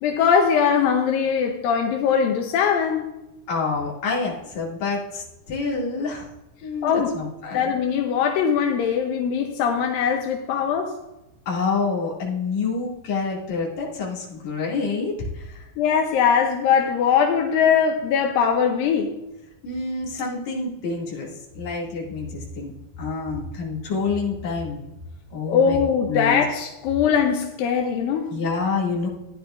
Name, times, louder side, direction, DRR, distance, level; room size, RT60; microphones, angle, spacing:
voice 1, 0.0-3.1 6.8-7.1 7.5-10.9 15.8-19.1 25.5-28.3, left 7 dB, 85° left, 3 dB, 2.5 m, -21 dB
voice 2, 3.5-6.3 6.6-7.7 11.5-15.6 19.6-21.3 21.6-22.7 23.0-24.8 25.3-25.8 26.1-26.4 28.3-29.1, left 4 dB, 55° left, -4 dB, 3.5 m, -27 dB
15.0 x 10.5 x 2.5 m, 0.95 s
omnidirectional pair, 4.1 m